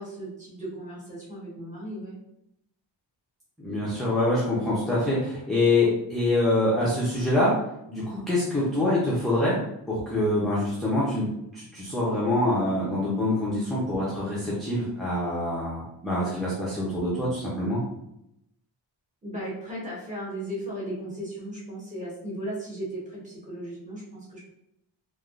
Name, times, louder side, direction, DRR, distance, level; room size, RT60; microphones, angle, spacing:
voice 1, 0.0-2.2 19.2-24.4, right 1 dB, 15° right, -7 dB, 1.1 m, -36 dB
voice 2, 3.6-7.5 7.9-9.6 9.9-17.8, left 1 dB, ahead, -8 dB, 0.5 m, -25 dB
3.3 x 2.5 x 2.4 m, 0.80 s
wide cardioid pair, 170°, 46 cm